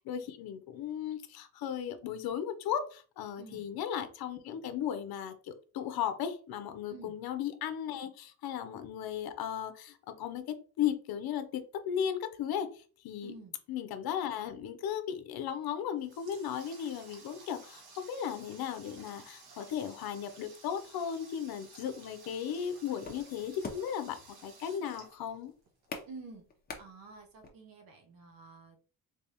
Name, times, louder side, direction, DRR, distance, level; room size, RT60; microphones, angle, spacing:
voice 1, 0.0-12.7 13.0-13.3 13.7-25.5, left 9 dB, 75° left, 9 dB, 0.6 m, -36 dB
voice 2, 3.4-3.7 6.9-7.2 13.2-13.5 26.1-26.5 26.8-28.8, right 3 dB, 65° right, 5 dB, 1.0 m, -50 dB
Water tap faucet, 15.7-25.9, right 4 dB, 85° right, 1.3 m, -55 dB
sound 1, 22.6-27.5, left 4 dB, 25° left, 0.7 m, -45 dB
3.4 x 3.4 x 2.9 m, 0.39 s
cardioid pair, 125°, 37 cm